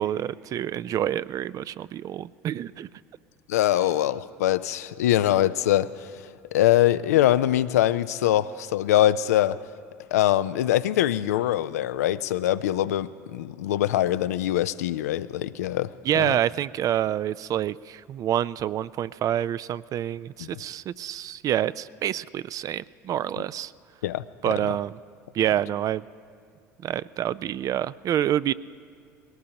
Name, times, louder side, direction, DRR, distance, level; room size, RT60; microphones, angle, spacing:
voice 1, 0.0-2.9 16.0-23.7 24.4-25.0 25.3-26.0 26.8-28.5, right 11 dB, 45° right, 18 dB, 0.3 m, -27 dB
voice 2, 3.5-6.1 6.5-9.6 10.1-16.4 20.4-20.6 24.0-24.6, left 13 dB, 80° left, 14 dB, 0.4 m, -23 dB
21.5 x 18.5 x 2.9 m, 2.3 s
hypercardioid pair, 70°, 8 cm